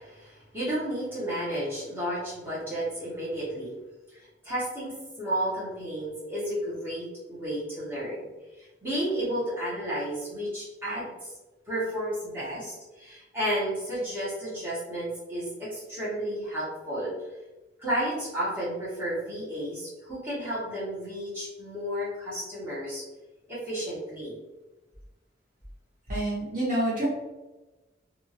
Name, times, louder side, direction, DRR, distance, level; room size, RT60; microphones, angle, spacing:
voice 1, 0.0-3.7 4.1-8.3 8.6-11.3 11.7-17.1 17.8-23.0 23.5-24.4, right 1 dB, 10° right, -9 dB, 1.2 m, -32 dB
voice 2, 26.1-27.1, right 1 dB, 45° right, -7 dB, 0.8 m, -27 dB
2.7 x 2.6 x 2.8 m, 1.1 s
head